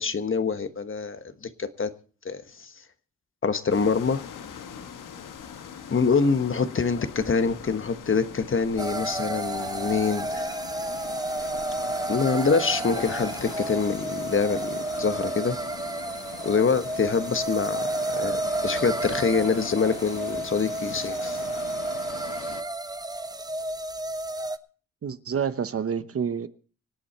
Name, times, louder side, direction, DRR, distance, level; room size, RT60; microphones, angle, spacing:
voice 1, 0.0-1.9 2.2-2.7 3.4-4.2 5.9-10.5 12.1-15.6 16.4-21.4, left 5 dB, 40° left, 1.3 m, -25 dB
sound 1, 3.7-22.6, left 7 dB, 80° left, 1.4 m, -41 dB
sound 2, 8.8-24.6, right 2 dB, 10° right, 0.7 m, -31 dB
voice 2, 25.0-26.5, right 7 dB, 45° right, 0.9 m, -28 dB
25.0 x 8.6 x 4.3 m
cardioid pair, 70°, 31 cm